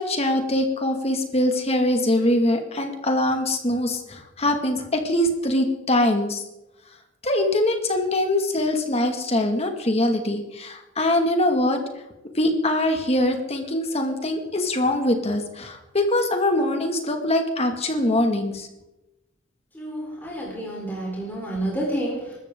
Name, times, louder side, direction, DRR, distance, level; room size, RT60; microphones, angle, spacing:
voice 1, 0.0-6.4 7.2-11.8 12.3-18.7, left 1 dB, 30° left, 4 dB, 2.2 m, -23 dB
voice 2, 19.7-22.4, right 1 dB, 10° left, -4 dB, 4.0 m, -29 dB
24.0 x 13.5 x 3.9 m, 0.93 s
head